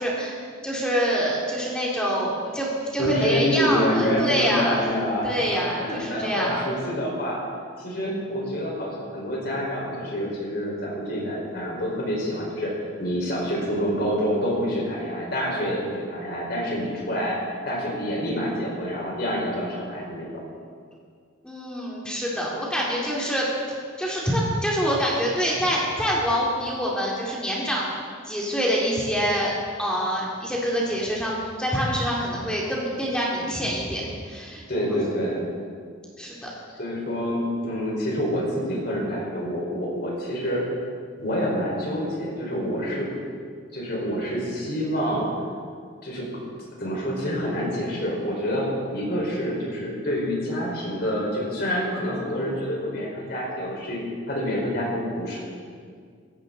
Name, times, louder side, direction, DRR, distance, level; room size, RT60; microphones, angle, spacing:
voice 1, 0.0-4.9 5.2-6.6 21.4-23.5 24.0-27.9 28.3-29.5 29.8-34.6 34.9-35.0 36.2-36.5, equal, 5° left, -5 dB, 2.4 m, -26 dB
voice 2, 3.0-7.4 7.8-12.7 13.0-17.4 17.6-20.4 34.7-35.4 36.8-40.6 41.2-43.1 43.7-45.3 46.0-46.3 46.8-54.0 54.3-55.4, equal, 50° left, -3 dB, 4.6 m, -27 dB
16.5 x 16.0 x 3.9 m, 2.1 s
head